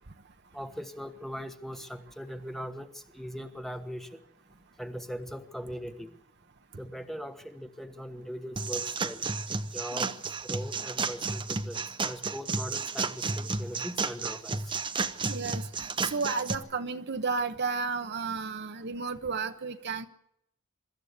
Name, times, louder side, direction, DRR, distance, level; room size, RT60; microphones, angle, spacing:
voice 1, 0.5-4.2 4.8-6.1 6.8-9.2 9.7-10.1 10.4-14.8, equal, ahead, 7 dB, 1.3 m, -40 dB
sound 1, 8.6-16.5, right 4 dB, 25° right, 0.9 m, -32 dB
voice 2, 15.3-20.1, right 4 dB, 55° right, 8 dB, 1.1 m, -33 dB
23.5 x 13.5 x 8.2 m, 0.77 s
head